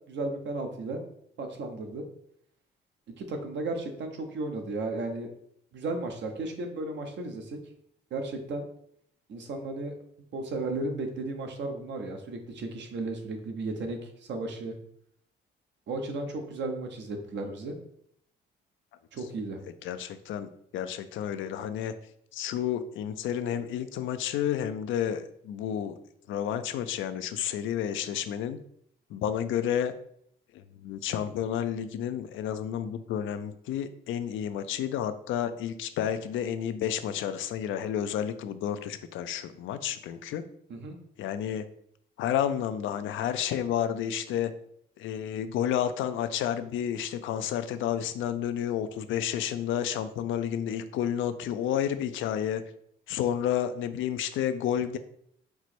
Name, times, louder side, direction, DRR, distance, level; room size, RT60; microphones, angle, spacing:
voice 1, 0.1-1.0 1.4-2.0 3.2-5.3 5.7-7.6 8.1-8.6 9.3-9.9 10.3-14.7 15.9-17.7 19.1-19.6 40.7-41.0, right 2 dB, 65° right, 4 dB, 0.8 m, -34 dB
voice 2, 19.8-21.9 22.3-26.0 26.3-28.6 29.1-29.9 30.5-40.4 41.2-41.7 42.2-44.5 45.0-52.6 53.1-55.0, left 9 dB, 80° left, 11 dB, 0.4 m, -31 dB
4.5 x 2.0 x 4.3 m, 0.68 s
cardioid pair, 90°, 20 cm